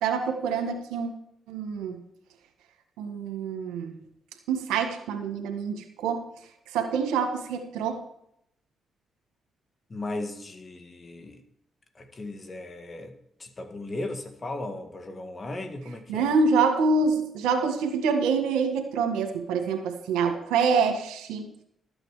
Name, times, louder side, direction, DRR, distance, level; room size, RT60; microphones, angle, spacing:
voice 1, 0.0-1.1 1.5-2.0 3.0-4.0 4.5-6.2 6.7-8.0 16.1-21.5, right 5 dB, 90° right, 5 dB, 1.6 m, -26 dB
voice 2, 9.9-11.4 12.0-13.1 13.4-16.3, left 2 dB, 40° left, 6 dB, 2.0 m, -36 dB
13.0 x 8.9 x 4.9 m, 0.74 s
supercardioid pair, 60°, 0 cm